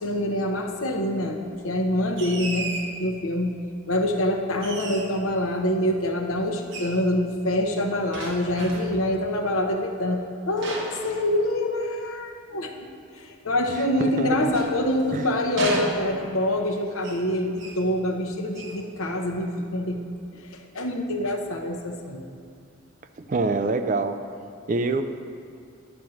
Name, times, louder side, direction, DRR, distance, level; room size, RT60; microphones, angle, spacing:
voice 1, 0.0-2.7 3.0-3.5 3.9-10.2 10.5-12.7 13.1-20.0 20.5-22.2, left 1 dB, 80° left, 2 dB, 0.9 m, -25 dB
sound 1, 2.2-3.0 4.6-5.3 6.7-7.0 8.1-9.1 10.6-11.8 14.0-15.2 15.6-16.5 17.0-17.3 17.6-17.9 18.5-18.8, right 2 dB, 60° right, 1.1 m, -34 dB
voice 2, 13.7-14.5 15.1-15.3 23.2-24.1 24.7-25.0, right 3 dB, 40° right, 8 dB, 0.4 m, -26 dB
10.0 x 4.4 x 6.3 m, 2.4 s
head